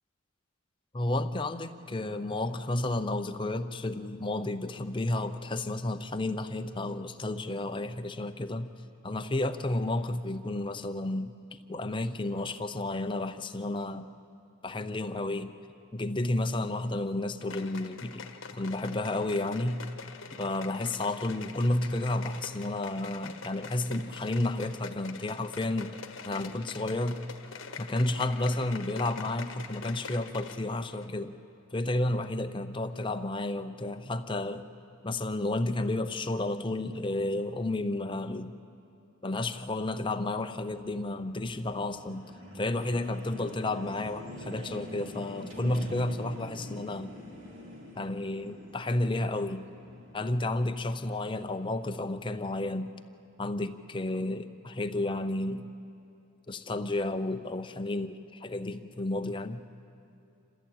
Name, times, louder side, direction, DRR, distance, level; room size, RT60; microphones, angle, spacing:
voice 1, 0.9-8.7 9.0-14.1 14.6-15.5 15.9-19.9 20.3-26.0 26.2-27.2 27.8-31.4 31.7-34.7 35.0-38.6 39.2-42.3 42.5-47.2 48.0-49.7 50.1-52.9 53.4-55.7 56.5-58.1 58.4-59.6, left 2 dB, 25° left, 8 dB, 0.7 m, -31 dB
sound 1, 17.4-30.7 31.0-31.1, left 5 dB, 65° left, 1.4 m, -44 dB
sound 2, 40.6-50.3, left 1 dB, 60° right, 3.2 m, -46 dB
27.0 x 14.5 x 8.9 m, 2.8 s
head